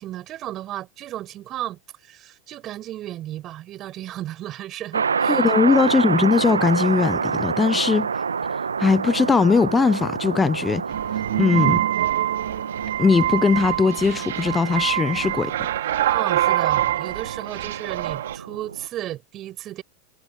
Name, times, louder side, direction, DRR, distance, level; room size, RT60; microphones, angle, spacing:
voice 1, 0.0-5.4 11.6-11.8 16.0-19.8, right 13 dB, 35° right, 7.9 m, -34 dB
sound 1, 4.9-18.9, right 6 dB, 80° right, 1.4 m, -28 dB
voice 2, 5.3-8.1 8.8-10.8 11.4-11.8 13.0-15.5, left 5 dB, 15° left, 0.5 m, -19 dB
sound 2, 10.9-18.4, right 13 dB, 65° right, 3.9 m, -25 dB
figure-of-eight pair, 90°, 0 cm